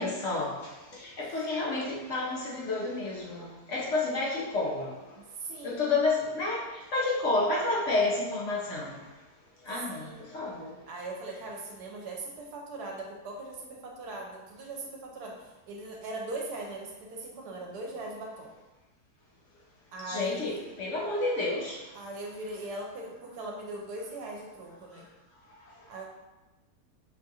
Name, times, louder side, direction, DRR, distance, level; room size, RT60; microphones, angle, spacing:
voice 1, 0.0-5.2 5.6-9.1 9.6-10.8 20.1-22.0 24.9-25.0 25.6-26.1, left 3 dB, 60° left, -4 dB, 0.9 m, -30 dB
voice 2, 5.2-5.8 9.9-10.2 10.9-18.5 19.9-20.6 21.9-25.1 25.9-26.1, right 2 dB, 80° right, 0 dB, 1.1 m, -40 dB
5.8 x 2.4 x 2.7 m, 1.1 s
omnidirectional pair, 1.7 m